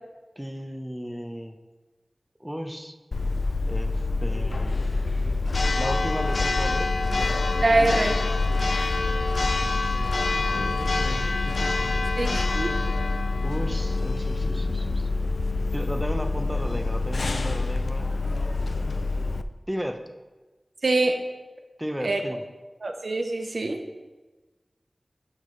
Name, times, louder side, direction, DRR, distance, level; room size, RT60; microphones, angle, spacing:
voice 1, 0.4-1.5 2.4-3.0 3.7-4.9 5.7-6.9 10.3-11.3 13.4-15.1 15.7-18.1 19.7-20.0 21.8-22.4, equal, 5° right, 5 dB, 0.7 m, -34 dB
Church bell, 3.1-19.4, left 3 dB, 90° left, 0.3 m, -26 dB
voice 2, 7.6-8.1 12.2-12.7 20.8-21.2 22.0-22.2 22.8-23.8, right 2 dB, 85° right, 4 dB, 0.8 m, -24 dB
12.0 x 5.9 x 3.2 m, 1.2 s
wide cardioid pair, 65°, 0 cm